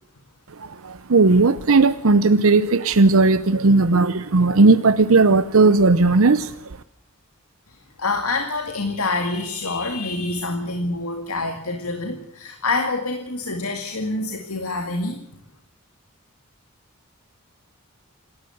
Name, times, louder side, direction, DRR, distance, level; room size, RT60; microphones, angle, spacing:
voice 1, 0.8-6.5, right 3 dB, 70° right, 0.8 m, -16 dB
voice 2, 7.7-15.2, left 3 dB, 80° left, 2.2 m, -26 dB
27.0 x 13.0 x 7.9 m
head